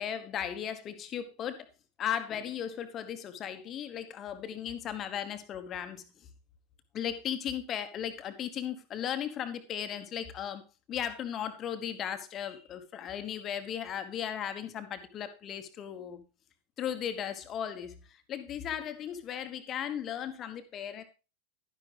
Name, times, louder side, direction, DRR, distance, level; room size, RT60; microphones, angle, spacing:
voice 1, 0.0-1.7 2.0-6.0 6.9-10.6 10.9-16.2 16.8-21.0, left 9 dB, 30° left, 9 dB, 1.3 m, -36 dB
11.5 x 10.5 x 3.4 m, 0.31 s
figure-of-eight pair, 90°, 0 cm